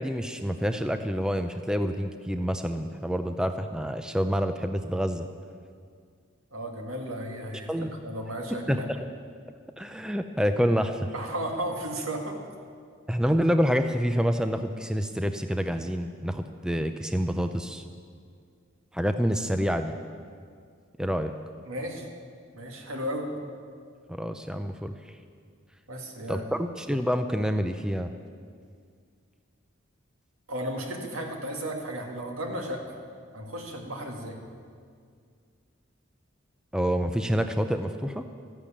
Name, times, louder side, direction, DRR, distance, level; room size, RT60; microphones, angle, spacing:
voice 1, 0.0-5.3 7.7-7.9 8.7-9.1 9.8-11.1 13.1-17.8 18.9-19.9 21.0-21.3 24.1-24.9 26.3-28.1 36.7-38.3, equal, 5° right, 7 dB, 0.5 m, -27 dB
voice 2, 6.5-8.9 11.1-12.4 21.7-22.1 22.5-23.3 25.9-26.7 30.5-33.0 33.3-34.4, right 1 dB, 85° right, 2 dB, 2.2 m, -34 dB
14.0 x 11.0 x 8.7 m, 2.1 s
head